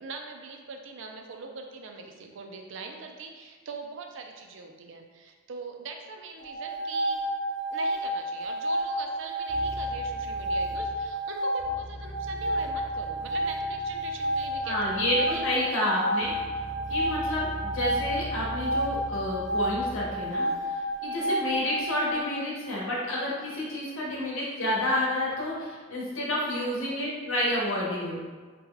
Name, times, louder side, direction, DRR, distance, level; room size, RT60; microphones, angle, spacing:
voice 1, 0.0-7.2 7.7-16.1 26.4-26.5, right 4 dB, 65° right, 3 dB, 0.4 m, -42 dB
sound 1, 6.4-22.2, right 1 dB, 40° left, 0.6 m, -30 dB
sound 2, 9.5-11.2 11.6-15.7 16.2-20.4, equal, 10° right, 0.5 m, -41 dB
voice 2, 14.6-16.3 16.9-20.7 21.0-28.2, left 1 dB, 75° left, -4 dB, 0.9 m, -29 dB
2.8 x 2.2 x 3.7 m, 1.5 s
head